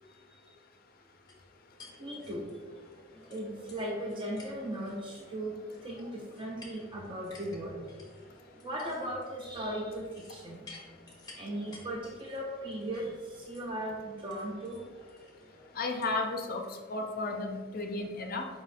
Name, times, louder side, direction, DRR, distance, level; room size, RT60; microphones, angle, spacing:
sound 1, 1.3-16.7, left 2 dB, 20° left, 0.8 m, -55 dB
voice 1, 2.0-2.5 3.3-5.6 5.8-7.8 8.6-10.6 11.3-14.9, right 1 dB, 25° right, -2 dB, 0.5 m, -37 dB
voice 2, 15.8-16.6 16.9-18.5, left 3 dB, 45° left, 4 dB, 0.4 m, -33 dB
4.8 x 2.4 x 4.1 m, 1.5 s
head